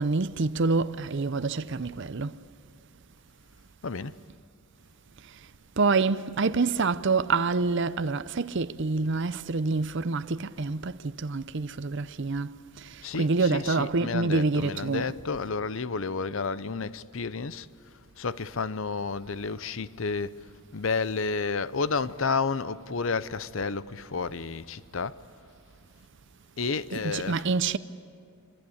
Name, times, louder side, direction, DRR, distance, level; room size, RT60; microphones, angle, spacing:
voice 1, 0.0-2.3 5.8-10.9 11.2-12.5 13.1-15.1 26.9-27.8, right 4 dB, 55° right, 0.6 m, -26 dB
voice 2, 3.8-4.1 13.0-17.7 18.2-20.5 20.7-25.2 26.6-27.4, left 4 dB, 65° left, 0.7 m, -31 dB
26.5 x 25.5 x 8.6 m
head